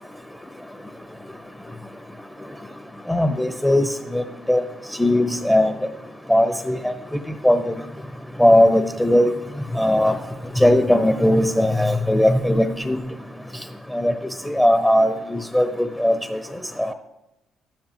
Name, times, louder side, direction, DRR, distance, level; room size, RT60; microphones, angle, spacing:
voice 1, 3.1-3.8 4.1-4.6 5.0-5.7 6.3-6.9 7.4-7.6 8.4-9.3 9.8-10.1 10.6-13.0 14.0-14.1 14.4-16.1 16.8-16.9, left 1 dB, 10° left, 7 dB, 1.0 m, -18 dB
14.0 x 12.0 x 3.1 m, 0.94 s
supercardioid pair, 60°, 0 cm